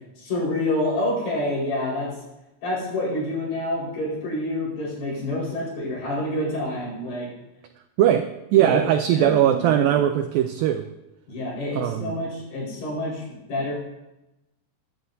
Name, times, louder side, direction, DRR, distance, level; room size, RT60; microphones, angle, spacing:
voice 1, 0.2-2.1 2.6-7.3 8.6-8.8 9.1-9.9 11.3-13.7, left 1 dB, 70° left, -4 dB, 6.6 m, -27 dB
voice 2, 8.0-10.9 11.7-12.1, right 11 dB, 85° right, 7 dB, 2.0 m, -20 dB
23.0 x 11.5 x 2.7 m, 0.95 s
omnidirectional pair, 4.8 m